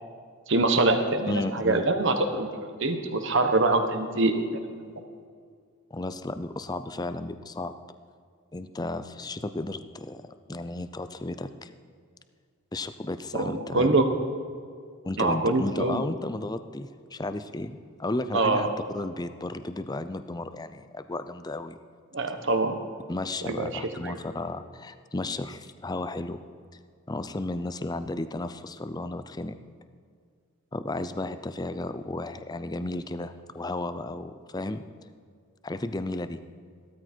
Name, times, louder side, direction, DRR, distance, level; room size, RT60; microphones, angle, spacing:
voice 1, 0.5-2.5 2.8-4.9 13.3-14.1 15.2-16.0 18.3-18.7 22.1-22.7 23.4-23.7 24.0-24.2, right 2 dB, 60° right, 6 dB, 1.3 m, -24 dB
voice 2, 1.3-1.9 5.9-7.7 8.5-10.2 10.5-11.7 12.7-14.0 15.0-18.7 18.9-21.8 23.1-26.5 27.1-29.6 30.7-34.8 35.6-36.4, left 2 dB, 20° left, 11 dB, 0.5 m, -33 dB
15.5 x 13.0 x 4.5 m, 2.1 s
head